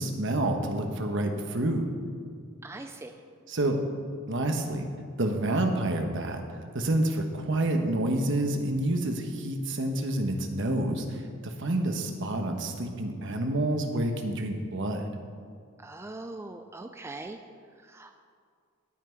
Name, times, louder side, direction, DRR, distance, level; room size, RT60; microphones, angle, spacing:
voice 1, 0.0-1.9 3.5-3.8 4.3-4.9 5.2-6.4 6.7-15.0, right 1 dB, 65° right, 4 dB, 1.2 m, -28 dB
voice 2, 2.6-3.2 15.8-17.4 17.9-18.2, right 2 dB, 15° right, 6 dB, 0.4 m, -41 dB
17.5 x 5.9 x 4.6 m, 2.2 s
head